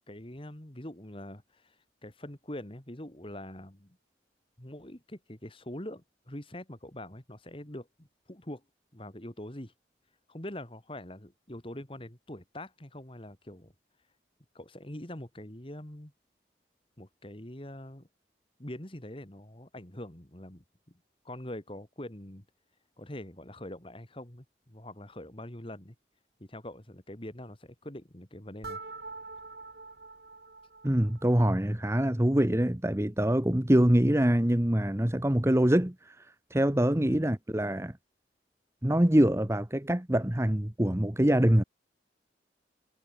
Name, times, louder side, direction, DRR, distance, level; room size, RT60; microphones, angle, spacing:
voice 1, 0.1-1.8 2.0-4.0 4.6-8.6 8.9-9.7 10.3-13.7 14.5-16.1 17.0-18.1 18.6-20.6 21.2-22.5 23.0-25.9 26.4-28.8 37.0-37.2, left 1 dB, 30° left, 2.5 m, -43 dB
sound 1, 28.6-31.5, right 3 dB, 60° right, 4.1 m, -45 dB
voice 2, 30.8-35.9 36.5-37.9 38.8-41.6, right 1 dB, 15° right, 1.1 m, -24 dB
head